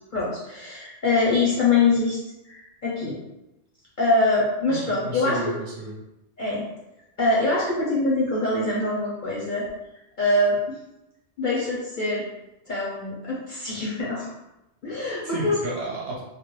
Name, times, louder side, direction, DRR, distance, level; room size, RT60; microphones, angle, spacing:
voice 1, 0.1-2.2 2.4-3.2 4.0-5.4 6.4-6.7 7.2-9.6 10.2-10.8 11.4-12.2 12.7-14.3 14.8-15.6, left 2 dB, 55° left, -6 dB, 0.6 m, -24 dB
voice 2, 4.9-5.9 15.2-16.2, right 2 dB, 60° right, -4 dB, 0.8 m, -32 dB
2.4 x 2.0 x 3.0 m, 0.94 s
omnidirectional pair, 1.3 m